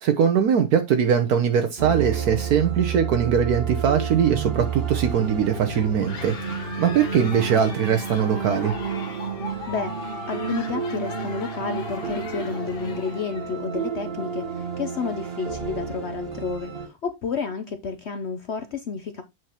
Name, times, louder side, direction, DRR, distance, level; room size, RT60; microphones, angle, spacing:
voice 1, 0.0-8.8, right 7 dB, 70° right, 1.3 m, -21 dB
sound 1, 1.8-16.9, right 6 dB, 40° right, 1.3 m, -31 dB
sound 2, 5.7-13.6, left 5 dB, 85° left, 2.0 m, -39 dB
voice 2, 9.7-19.2, left 5 dB, 55° left, 0.8 m, -31 dB
7.7 x 6.3 x 2.9 m
omnidirectional pair, 1.7 m